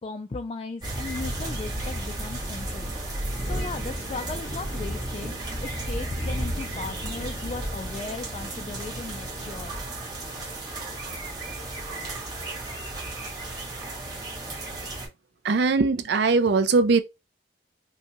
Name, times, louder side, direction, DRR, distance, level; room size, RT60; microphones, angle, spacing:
voice 1, 0.0-9.7, left 3 dB, 30° left, 0.3 m, -37 dB
sound 1, 0.8-15.1, right 1 dB, 20° right, 1.4 m, -33 dB
voice 2, 15.4-17.0, right 4 dB, 60° right, 0.4 m, -20 dB
5.4 x 2.2 x 2.9 m
head